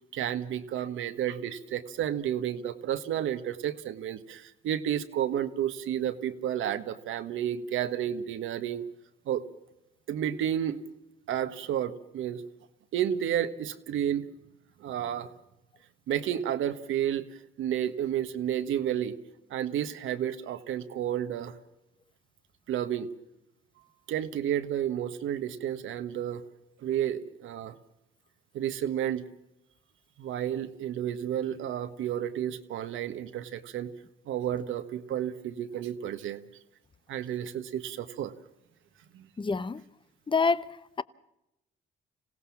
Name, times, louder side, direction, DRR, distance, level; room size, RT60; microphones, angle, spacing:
voice 1, 0.1-8.9 9.3-9.4 10.1-10.8 11.3-12.4 12.9-14.3 14.8-15.3 16.1-17.3 17.6-19.1 19.5-21.5 22.7-23.1 24.1-26.4 26.8-27.7 28.5-29.2 30.2-33.9 34.3-36.4 37.1-38.3 39.1-39.3, right 10 dB, 80° right, 1.4 m, -31 dB
voice 2, 39.4-39.8 40.3-41.0, left 4 dB, 25° left, 0.8 m, -27 dB
26.5 x 17.0 x 7.3 m
cardioid pair, 90°, 20 cm